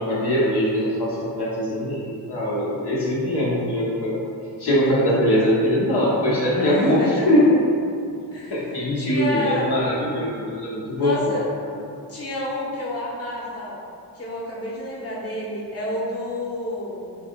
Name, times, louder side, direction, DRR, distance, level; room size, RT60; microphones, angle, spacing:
voice 1, 0.0-2.0 2.3-4.2 4.6-7.6 8.5-11.3, left 1 dB, 60° left, -7 dB, 0.7 m, -21 dB
voice 2, 6.5-7.3 8.3-9.7 10.9-11.4 12.1-13.8 14.1-17.2, left 1 dB, 35° left, -5 dB, 0.9 m, -29 dB
3.2 x 2.5 x 2.8 m, 2.5 s
cardioid pair, 55°, 44 cm